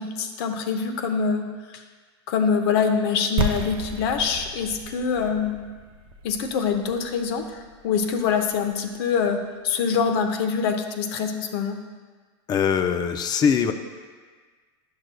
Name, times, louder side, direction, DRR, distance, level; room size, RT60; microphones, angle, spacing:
voice 1, 0.0-1.8 2.3-5.6 6.2-9.4 9.6-11.8, left 6 dB, 60° left, 6 dB, 0.8 m, -25 dB
sound 1, 3.4-9.1, right 3 dB, 35° right, 0.5 m, -33 dB
voice 2, 12.5-13.7, left 7 dB, 30° left, 8 dB, 0.5 m, -22 dB
10.5 x 6.4 x 2.2 m, 1.5 s
hypercardioid pair, 120°, 15 cm